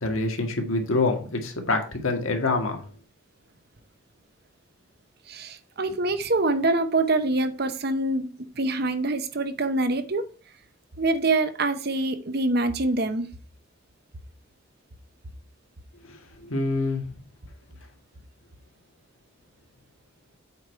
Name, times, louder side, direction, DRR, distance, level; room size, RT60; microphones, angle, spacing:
voice 1, 0.0-2.8 16.1-17.1, left 3 dB, 90° left, 1.9 m, -26 dB
voice 2, 5.3-10.3 11.0-13.3, right 2 dB, 50° right, 0.9 m, -25 dB
8.0 x 4.8 x 4.6 m
head